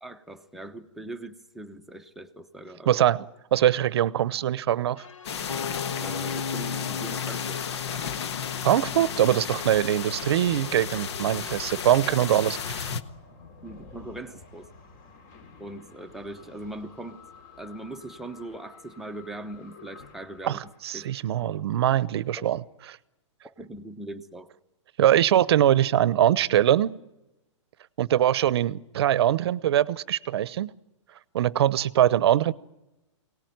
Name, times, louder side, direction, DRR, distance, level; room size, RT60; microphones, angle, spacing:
voice 1, 0.0-3.1 6.0-8.3 13.6-14.7 15.6-17.2 17.6-20.6 20.9-21.1 21.4-21.5 22.4-22.5 23.4-24.5, right 1 dB, ahead, 4 dB, 0.9 m, -41 dB
voice 2, 2.9-3.2 3.5-5.1 8.6-12.9 20.4-22.6 25.0-27.0 28.0-30.7 31.3-32.5, right 11 dB, 55° right, 20 dB, 0.8 m, -22 dB
sound 1, 5.0-10.8, left 6 dB, 80° left, 1.2 m, -36 dB
sound 2, 5.2-13.0, left 7 dB, 60° left, 1.4 m, -34 dB
sound 3, 9.5-21.5, left 4 dB, 35° left, 2.8 m, -50 dB
23.5 x 18.5 x 9.4 m, 1.0 s
hypercardioid pair, 155°, 16 cm